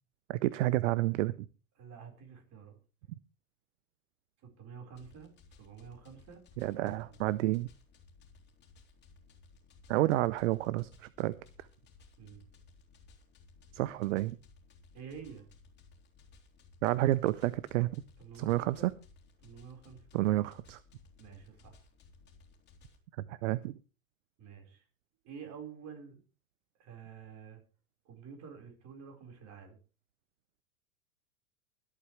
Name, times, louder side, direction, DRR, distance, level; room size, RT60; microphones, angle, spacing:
voice 1, 0.3-1.3 6.6-7.7 9.9-11.4 13.7-14.4 16.8-17.9 18.3-18.9 20.1-20.8 23.3-23.7, right 16 dB, 60° right, 19 dB, 0.7 m, -30 dB
voice 2, 1.8-2.8 4.4-5.3 5.6-7.2 12.2-12.4 14.9-15.5 18.2-18.9 19.4-20.1 21.2-21.8 24.4-24.8 25.2-26.2 26.8-27.6 28.0-29.8, right 6 dB, 40° right, 3 dB, 4.5 m, -49 dB
sound 1, 4.9-23.0, left 4 dB, 25° left, 3.2 m, -60 dB
23.5 x 8.4 x 3.2 m, 0.34 s
hypercardioid pair, 105°, 43 cm